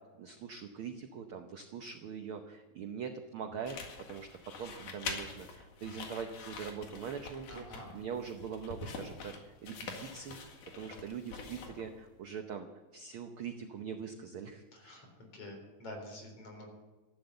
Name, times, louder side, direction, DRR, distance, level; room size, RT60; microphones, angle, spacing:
voice 1, 0.2-3.8 4.1-4.3 4.6-7.6 7.9-10.4 10.7-12.7 12.9-14.6, right 7 dB, 70° right, 6 dB, 1.2 m, -42 dB
sound 1, 3.6-12.0, left 4 dB, 80° left, 3.5 m, -45 dB
voice 2, 7.5-7.9 14.7-16.7, left 1 dB, 50° left, 2 dB, 4.8 m, -47 dB
14.5 x 11.5 x 8.0 m, 1.2 s
omnidirectional pair, 3.6 m